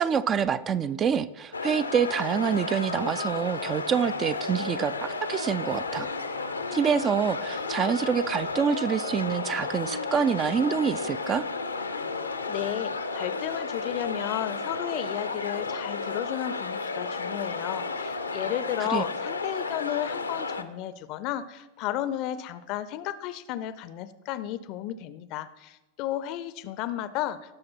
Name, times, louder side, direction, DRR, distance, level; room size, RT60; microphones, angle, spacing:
voice 1, 0.0-6.1 6.7-11.5 18.8-19.0, right 7 dB, 25° right, 15 dB, 0.4 m, -26 dB
sound 1, 1.5-20.6, left 3 dB, 80° left, 0.7 m, -33 dB
voice 2, 12.5-27.4, left 12 dB, 40° left, 15 dB, 0.6 m, -33 dB
17.0 x 6.4 x 4.4 m, 1.0 s
figure-of-eight pair, 90°, 0 cm